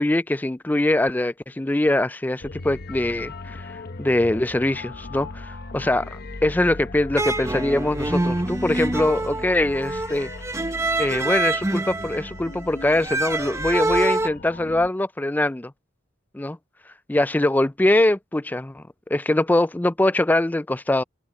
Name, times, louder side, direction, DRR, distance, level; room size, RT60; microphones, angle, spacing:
voice 1, 0.0-10.3 11.0-15.7 16.3-16.6 17.1-18.8 19.1-21.0, left 1 dB, 10° left, 0.3 m, -23 dB
sound 1, 2.4-14.9, left 2 dB, 50° left, 0.9 m, -38 dB
sound 2, 7.2-14.3, right 2 dB, 15° right, 0.8 m, -26 dB
head